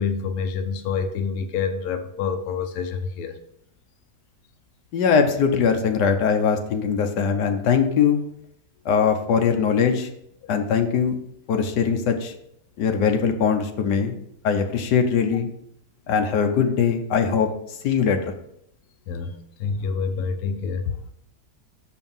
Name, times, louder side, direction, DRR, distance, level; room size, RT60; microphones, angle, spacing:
voice 1, 0.0-3.3 19.1-20.9, left 5 dB, 70° left, 6 dB, 1.1 m, -27 dB
voice 2, 4.9-8.2 8.8-10.1 10.5-11.2 11.5-12.3 12.8-14.2 14.4-15.5 16.1-17.5 17.8-18.3, left 6 dB, 85° left, 5 dB, 1.4 m, -21 dB
6.3 x 4.5 x 5.4 m, 0.72 s
omnidirectional pair, 1.8 m